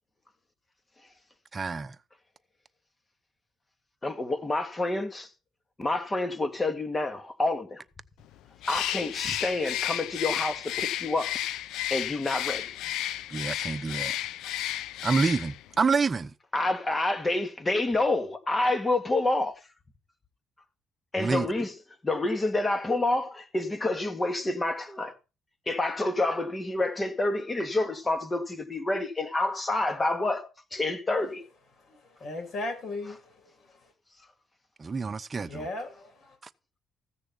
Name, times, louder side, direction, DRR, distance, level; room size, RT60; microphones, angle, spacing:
voice 1, 1.5-2.0 13.3-14.1 15.0-16.3 21.2-21.5 34.8-35.7, right 4 dB, 35° right, 0.9 m, -27 dB
voice 2, 4.0-5.3 5.8-7.8 8.7-11.3 11.9-12.7 16.5-19.5 21.1-21.7 22.0-25.2 25.7-31.4, left 2 dB, 25° left, 2.1 m, -28 dB
Bird, 8.6-15.7, left 13 dB, 90° left, 0.6 m, -32 dB
voice 3, 32.2-33.9 35.3-36.4, left 2 dB, 55° left, 7.5 m, -37 dB
15.0 x 6.7 x 5.5 m
cardioid pair, 90°, 0 cm